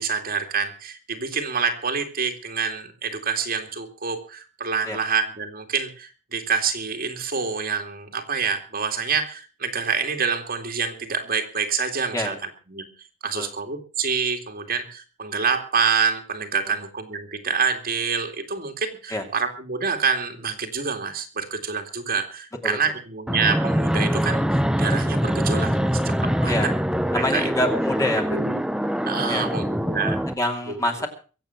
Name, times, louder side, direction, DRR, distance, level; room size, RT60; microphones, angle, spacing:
voice 1, 0.0-12.4 12.7-12.8 13.2-24.4 24.8-26.7 27.1-27.7 28.3-28.7 29.1-30.2 30.7-30.8, right 5 dB, 45° right, 5 dB, 2.5 m, -27 dB
Fixed-wing aircraft airplane, 23.3-30.3, equal, 5° right, 0.7 m, -23 dB
voice 2, 27.1-28.2 29.3-29.5 30.3-31.1, left 1 dB, 15° left, 3 dB, 2.7 m, -26 dB
23.5 x 8.3 x 5.8 m, 0.37 s
head